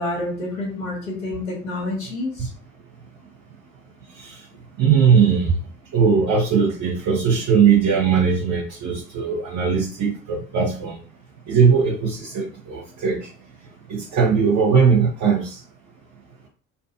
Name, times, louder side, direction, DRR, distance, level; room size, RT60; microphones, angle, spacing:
voice 1, 0.0-2.5, left 2 dB, 80° left, -3 dB, 1.2 m, -28 dB
voice 2, 4.8-5.5 5.9-11.0 11.5-13.3 13.9-15.6, right 6 dB, 45° right, -3 dB, 0.8 m, -19 dB
2.6 x 2.5 x 2.5 m, 0.41 s
figure-of-eight pair, 55°, 41 cm